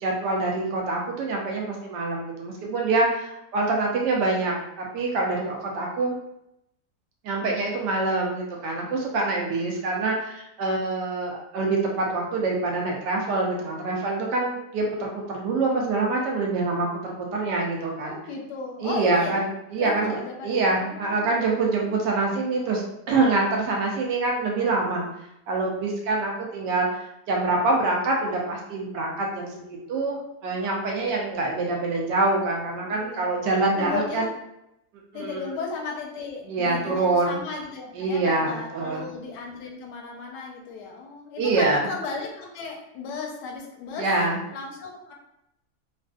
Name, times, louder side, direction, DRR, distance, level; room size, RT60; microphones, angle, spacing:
voice 1, 0.0-6.2 7.2-18.2 18.8-20.2 20.4-22.8 23.1-25.0 25.5-26.9 27.3-34.3 35.1-35.5 36.5-37.4 38.0-39.1 41.4-41.9 44.0-44.4, right 3 dB, 85° right, -1 dB, 1.3 m, -25 dB
voice 2, 17.9-19.4 19.8-21.9 32.9-33.3 33.7-34.3 35.1-44.1 44.5-45.1, left 4 dB, 80° left, 0 dB, 1.2 m, -35 dB
3.4 x 2.4 x 2.3 m, 0.83 s
omnidirectional pair, 1.8 m